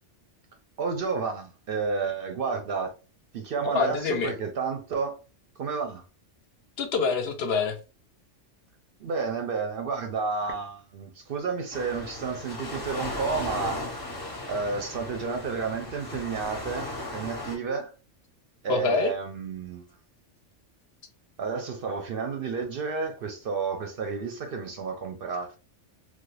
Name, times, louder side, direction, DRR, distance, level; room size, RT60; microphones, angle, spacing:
voice 1, 0.8-2.9 3.3-5.2 5.6-6.0 9.0-13.8 14.5-17.9 18.6-19.9 21.4-25.6, right 5 dB, 60° right, 0.6 m, -31 dB
voice 2, 3.6-4.3 6.8-7.8 18.7-19.1, left 5 dB, 65° left, 0.7 m, -26 dB
Waves surf, 11.7-17.6, left 2 dB, 25° left, 0.6 m, -36 dB
3.1 x 2.1 x 3.1 m
omnidirectional pair, 1.2 m